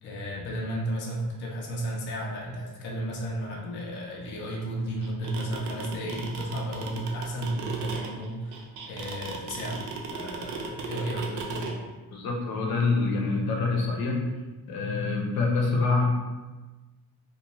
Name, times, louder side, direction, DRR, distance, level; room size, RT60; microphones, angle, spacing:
voice 1, 0.0-9.8 10.1-11.7, right 1 dB, 35° left, -2 dB, 0.4 m, -33 dB
sound 1, 5.0-11.7, right 5 dB, 55° right, 0.4 m, -36 dB
voice 2, 12.1-14.2 14.7-16.1, left 3 dB, 85° left, -1 dB, 0.7 m, -26 dB
2.5 x 2.2 x 2.9 m, 1.2 s
cardioid pair, 175°, 36 cm